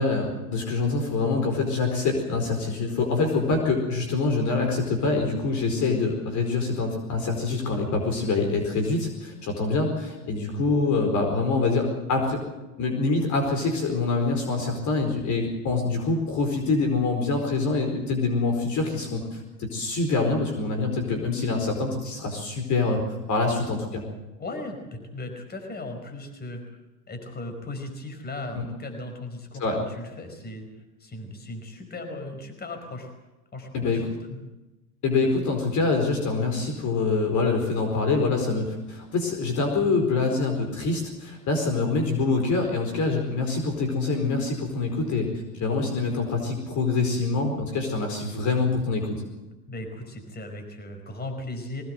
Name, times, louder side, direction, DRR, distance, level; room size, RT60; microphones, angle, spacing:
voice 1, 0.0-12.4 12.8-23.0 23.3-24.0 29.6-29.8 33.7-34.0 35.0-45.3 45.6-49.2, left 3 dB, 40° left, 4 dB, 4.7 m, -25 dB
voice 2, 24.4-26.6 27.1-30.7 31.0-33.1 33.5-34.4 49.7-51.8, left 2 dB, 20° left, 5 dB, 5.2 m, -37 dB
21.5 x 19.0 x 7.9 m, 1.1 s
hypercardioid pair, 95°, 47 cm